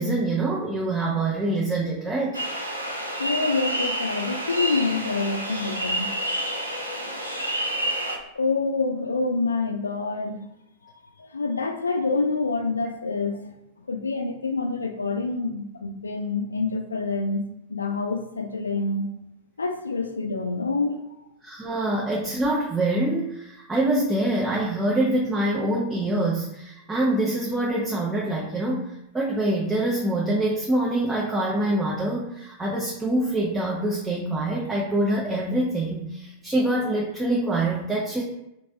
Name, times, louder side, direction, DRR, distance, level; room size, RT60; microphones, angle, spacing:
voice 1, 0.0-2.4 21.4-38.2, right 1 dB, 10° right, -4 dB, 0.6 m, -25 dB
sound 1, 2.3-8.2, right 1 dB, 85° right, 0.5 m, -29 dB
voice 2, 3.2-6.1 8.3-10.4 10.8-10.9 11.2-13.5 13.9-17.4 17.7-19.1 19.6-21.0, left 3 dB, 75° left, 5 dB, 0.4 m, -27 dB
3.1 x 2.5 x 2.7 m, 0.84 s
figure-of-eight pair, 90°, 0 cm